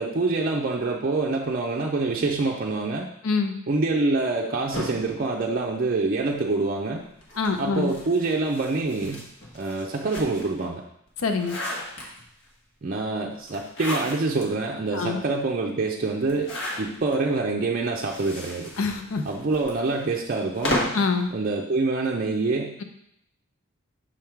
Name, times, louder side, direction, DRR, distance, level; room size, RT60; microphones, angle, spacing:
voice 1, 0.0-3.1 3.7-7.0 7.6-9.2 9.5-10.8 12.8-18.7 19.3-20.8 21.3-22.7, right 3 dB, 45° right, -1 dB, 0.5 m, -26 dB
voice 2, 3.2-3.6 7.4-7.9 11.2-11.6 14.9-15.2 18.8-19.2 20.9-21.3, left 4 dB, 80° left, 6 dB, 0.6 m, -25 dB
sound 1, 4.7-6.3 7.2-10.6 11.1-12.5 13.5-14.4 14.9-15.0 15.2-15.3 16.2-17.2 17.9-21.1, left 1 dB, 60° left, 1.5 m, -34 dB
6.2 x 3.6 x 4.5 m, 0.73 s
head